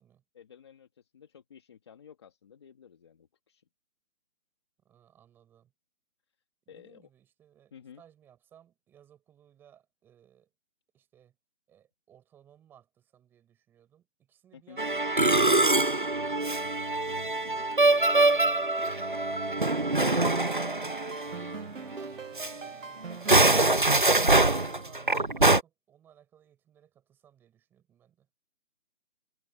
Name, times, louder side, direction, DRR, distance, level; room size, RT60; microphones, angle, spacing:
voice 1, 0.3-3.6 6.7-7.1 7.7-8.0 14.5-14.8, left 8 dB, 20° left, 2.1 m, -53 dB
voice 2, 4.8-5.7 6.7-10.5 10.9-11.4 11.7-15.7 16.3-16.7 18.1-18.6 19.3-28.3, right 10 dB, 5° right, 6.4 m, -59 dB
Musical instrument, 14.8-21.6 21.9-22.1 22.4-22.5 23.1-25.6, right 2 dB, 45° right, 0.4 m, -24 dB
sound 1, 20.1-25.1, right 5 dB, 75° right, 1.3 m, -42 dB
hypercardioid pair, 175°, 39 cm